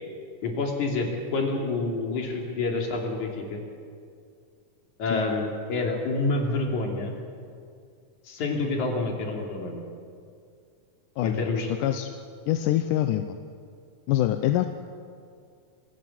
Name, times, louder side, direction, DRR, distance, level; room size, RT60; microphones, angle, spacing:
voice 1, 0.4-3.6 5.0-7.1 8.2-9.8 11.2-11.7, left 3 dB, 65° left, 1 dB, 4.2 m, -28 dB
voice 2, 12.5-13.4 14.1-14.7, left 13 dB, 90° left, 8 dB, 2.3 m, -25 dB
27.5 x 16.0 x 7.6 m, 2.2 s
omnidirectional pair, 3.7 m